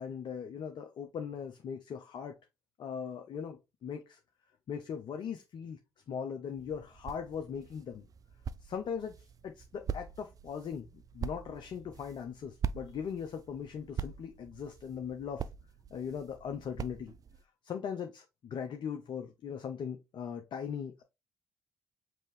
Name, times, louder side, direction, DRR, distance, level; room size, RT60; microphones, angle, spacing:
voice 1, 0.0-2.4 2.8-4.2 4.7-5.8 6.1-8.1 8.6-9.1 9.4-15.5 15.9-17.1 17.6-21.0, left 7 dB, 55° left, 0.6 m, -39 dB
sound 1, 6.5-17.4, right 7 dB, 40° right, 0.3 m, -43 dB
5.3 x 2.7 x 3.1 m
hypercardioid pair, 45°, 9 cm